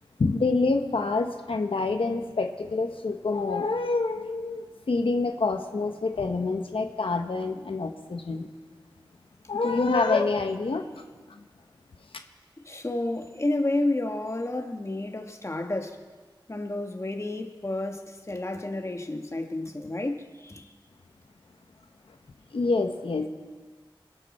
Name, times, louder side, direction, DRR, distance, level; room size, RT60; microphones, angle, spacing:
voice 1, 0.2-8.5 9.5-10.9 22.5-23.3, left 3 dB, 90° left, 1.1 m, -27 dB
voice 2, 12.6-16.0 16.5-20.7, left 2 dB, 35° left, 1.4 m, -30 dB
26.0 x 12.0 x 4.3 m
wide cardioid pair, 70°, 9 cm